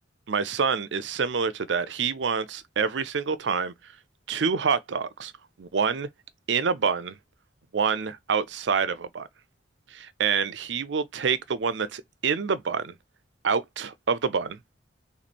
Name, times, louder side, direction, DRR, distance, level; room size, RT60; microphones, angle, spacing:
voice 1, 0.3-3.7 4.3-5.3 5.6-6.1 6.5-7.2 7.7-9.3 9.9-12.9 13.4-14.6, right 5 dB, 75° right, 0.5 m, -27 dB
3.6 x 3.2 x 4.2 m
head